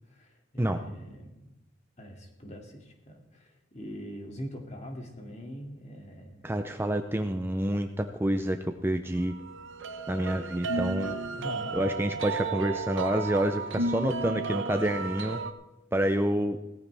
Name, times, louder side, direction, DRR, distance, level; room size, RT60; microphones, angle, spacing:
voice 1, 0.1-1.5 2.0-6.5 11.3-11.8, equal, 35° left, 2 dB, 2.5 m, -42 dB
voice 2, 6.4-9.3 10.1-11.2 11.7-15.4 15.9-16.6, right 1 dB, 10° right, 6 dB, 0.5 m, -28 dB
sound 1, 9.3-15.5, right 3 dB, 70° right, 0.9 m, -33 dB
17.5 x 14.5 x 3.5 m, 0.98 s
head